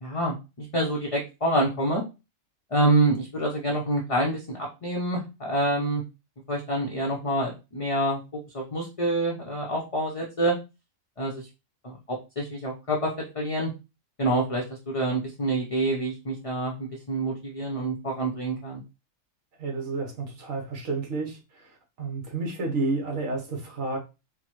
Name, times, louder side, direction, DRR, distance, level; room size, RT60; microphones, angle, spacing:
voice 1, 0.0-2.0 2.7-6.0 6.5-8.2 8.5-10.5 11.2-11.4 11.8-11.9 12.4-13.7 14.2-18.8, right 1 dB, 35° left, 0.6 m, -27 dB
voice 2, 19.6-21.4 22.0-24.0, right 3 dB, 70° right, 1.5 m, -30 dB
4.5 x 2.2 x 3.0 m
omnidirectional pair, 1.4 m